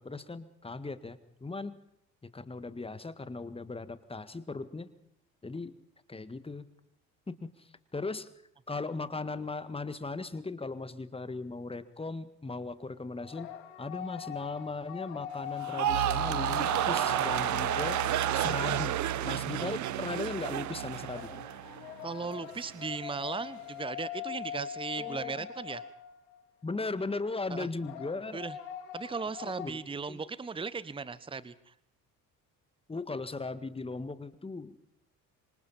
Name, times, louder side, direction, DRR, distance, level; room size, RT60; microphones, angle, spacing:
voice 1, 0.0-1.8 2.3-4.9 5.4-5.7 6.1-6.7 7.3-8.3 8.7-13.5 13.8-18.0 18.3-21.3 25.0-25.5 26.6-28.4 29.6-29.7 30.1-30.2 32.9-34.8, left 3 dB, 15° left, 12 dB, 1.7 m, -38 dB
sound 1, 13.2-19.3 21.1-26.4 27.8-29.7, left 11 dB, 65° left, 2.2 m, -41 dB
sound 2, 15.6-21.9 22.2-22.7, right 13 dB, 40° right, 0.9 m, -31 dB
sound 3, 15.8-22.6, right 10 dB, 80° right, 0.9 m, -39 dB
voice 2, 22.0-25.8 27.5-27.7 28.3-28.5 28.9-31.7, right 5 dB, 10° right, 17 dB, 1.0 m, -37 dB
26.0 x 25.0 x 4.3 m, 0.72 s
figure-of-eight pair, 55°, 43 cm